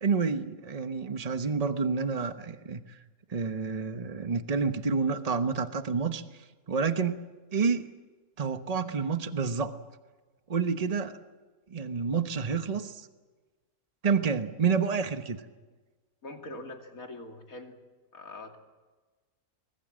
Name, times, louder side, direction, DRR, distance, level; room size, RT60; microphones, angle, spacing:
voice 1, 0.0-2.8 3.3-6.2 6.7-7.2 7.5-7.9 8.4-9.7 10.5-11.1 11.7-13.1 14.0-15.4, right 5 dB, 30° right, 10 dB, 1.1 m, -29 dB
voice 2, 16.2-17.8 18.1-18.6, left 2 dB, 65° left, 4 dB, 3.0 m, -43 dB
25.0 x 20.5 x 7.6 m, 1.3 s
omnidirectional pair, 1.6 m